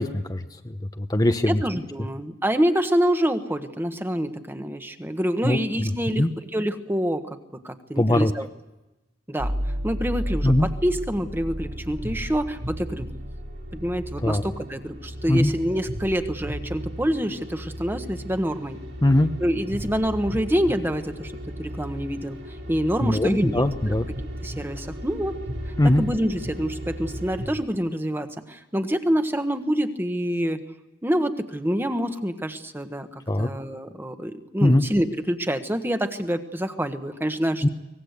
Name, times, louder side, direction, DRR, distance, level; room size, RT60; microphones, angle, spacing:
voice 1, 0.0-1.6 5.4-5.9 6.2-6.3 8.0-8.3 10.4-10.7 14.2-14.4 15.3-15.5 19.0-19.3 23.0-24.0 25.8-26.0 33.3-33.5 34.6-34.9 37.6-37.7, left 1 dB, 20° left, 7 dB, 0.8 m, -21 dB
voice 2, 1.5-8.5 9.3-9.5 9.8-13.1 13.7-18.8 19.4-21.3 21.6-22.4 22.7-24.0 24.4-25.4 26.0-30.6 31.0-37.7, equal, 10° right, 8 dB, 1.3 m, -26 dB
sound 1, 9.4-27.5, equal, 70° right, 5.5 m, -34 dB
24.0 x 19.5 x 8.1 m, 0.98 s
head